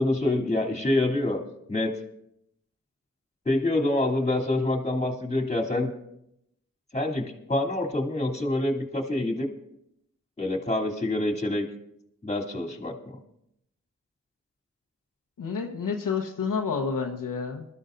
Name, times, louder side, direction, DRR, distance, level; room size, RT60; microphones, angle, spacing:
voice 1, 0.0-1.4 1.7-1.9 3.4-5.9 6.9-9.5 10.4-11.7 12.2-13.2, left 2 dB, 20° left, 1 dB, 2.9 m, -26 dB
voice 2, 15.4-17.6, left 5 dB, 85° left, 2 dB, 1.2 m, -29 dB
21.0 x 13.0 x 2.6 m, 0.80 s
cardioid pair, 40°, 32 cm